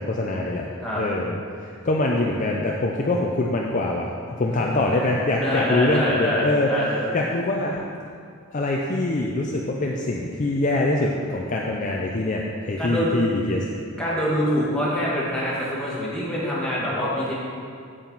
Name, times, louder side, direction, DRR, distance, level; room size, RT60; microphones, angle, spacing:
voice 1, 0.0-6.7 7.1-7.8 8.5-13.6, left 2 dB, 35° left, -1 dB, 0.5 m, -24 dB
voice 2, 4.6-7.1 12.8-13.2 14.0-17.3, equal, 5° left, -8 dB, 1.9 m, -25 dB
8.4 x 7.8 x 4.0 m, 2.3 s
head